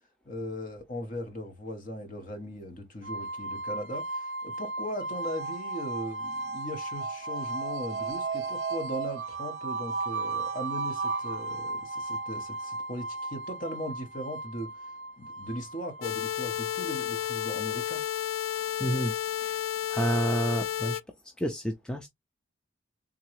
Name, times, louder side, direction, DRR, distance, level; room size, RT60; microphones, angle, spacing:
voice 1, 0.2-14.7 15.2-18.0, equal, 40° left, 1.0 m, -38 dB
sound 1, 3.0-18.0, right 3 dB, 60° right, 0.5 m, -35 dB
sound 2, 16.0-21.0, left 11 dB, 85° left, 0.3 m, -32 dB
voice 2, 18.8-19.1 19.4-19.6 19.9-21.0 21.4-22.1, right 1 dB, 5° left, 0.4 m, -29 dB
3.7 x 3.0 x 3.0 m
head